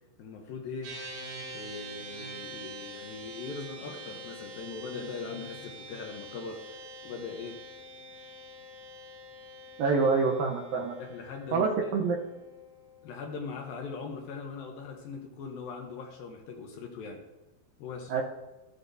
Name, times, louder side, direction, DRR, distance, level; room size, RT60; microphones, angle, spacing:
voice 1, 0.2-1.0 1.5-7.6 10.7-11.9 13.0-17.2 17.8-18.1, left 4 dB, 75° left, 2 dB, 2.2 m, -40 dB
sound 1, 0.8-14.4, right 1 dB, 65° right, 4.5 m, -46 dB
voice 2, 9.8-11.0 11.5-12.2 18.1-18.2, right 4 dB, 90° right, -1 dB, 2.0 m, -26 dB
15.0 x 10.0 x 2.7 m, 1.1 s
omnidirectional pair, 5.3 m